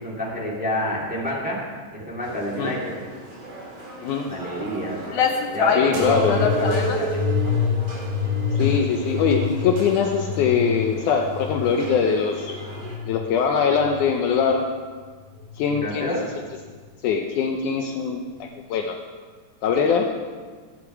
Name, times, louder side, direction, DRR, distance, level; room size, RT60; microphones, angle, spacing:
voice 1, 0.0-1.7 1.9-2.9 4.2-5.0 5.5-7.2 15.7-16.2, equal, 5° right, -6 dB, 2.2 m, -28 dB
sound 1, 2.2-13.0, right 2 dB, 45° right, 4.1 m, -40 dB
voice 2, 4.0-4.4 5.8-6.4 8.5-12.5 13.1-14.7 15.6-16.2 17.0-19.0 19.6-20.3, left 6 dB, 90° left, 3 dB, 1.7 m, -22 dB
sound 2, 4.7-4.8 5.1-7.1, left 6 dB, 70° left, 1.6 m, -23 dB
sound 3, 5.9-13.1 13.7-14.4 15.2-15.7 16.7-16.8, left 4 dB, 65° right, 4.2 m, -27 dB
15.5 x 10.0 x 4.7 m, 1.6 s
omnidirectional pair, 4.5 m